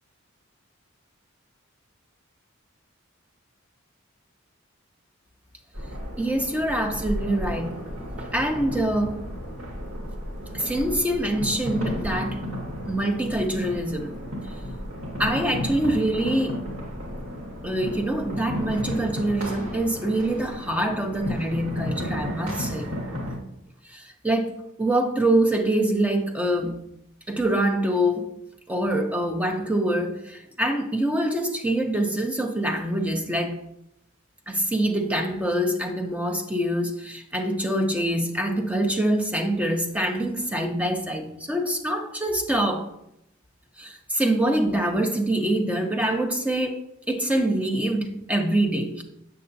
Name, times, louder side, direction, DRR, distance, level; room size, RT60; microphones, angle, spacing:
sound 1, 5.7-23.4, equal, 80° right, 1.7 m, -33 dB
voice 1, 6.2-7.7 8.2-9.2 10.5-12.4 12.9-14.1 15.2-16.6 17.6-22.9 23.9-24.5 24.8-26.8 27.3-28.3 28.7-33.6 34.5-42.9 43.8-46.8 47.1-49.0, right 1 dB, 5° right, 4 dB, 0.6 m, -25 dB
6.7 x 6.6 x 2.6 m, 0.81 s
head